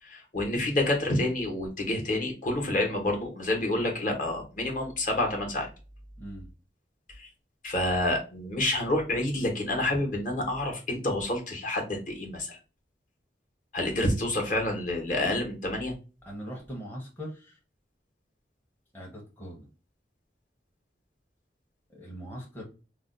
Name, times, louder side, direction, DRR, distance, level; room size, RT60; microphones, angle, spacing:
voice 1, 0.0-5.7 7.1-7.3 7.6-12.6 13.7-15.9, left 1 dB, 50° left, 1 dB, 0.9 m, -28 dB
voice 2, 6.2-6.5 16.3-17.6 18.9-19.7 21.9-22.6, equal, 10° left, -3 dB, 0.7 m, -41 dB
2.4 x 2.1 x 3.7 m, 0.33 s
head